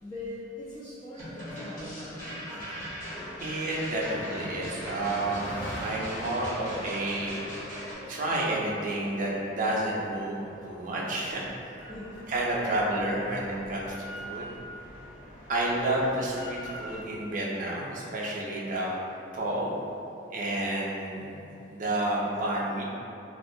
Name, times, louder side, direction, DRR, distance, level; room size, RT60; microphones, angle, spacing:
voice 1, 0.0-2.6 11.9-12.2, left 1 dB, 25° left, -9 dB, 0.4 m, -41 dB
sound 1, 1.1-7.9, equal, 45° left, 1.1 m, -39 dB
Car passing by, 3.1-12.7, equal, 65° left, 1.3 m, -44 dB
voice 2, 3.4-5.5 5.8-7.4 8.1-11.7 12.3-14.5 15.5-18.9 19.3-19.7 20.3-21.4 21.7-22.8, right 1 dB, 45° right, -4 dB, 0.5 m, -30 dB
Drill, 11.8-17.0, equal, 85° left, 0.6 m, -45 dB
3.5 x 2.3 x 2.6 m, 2.8 s
head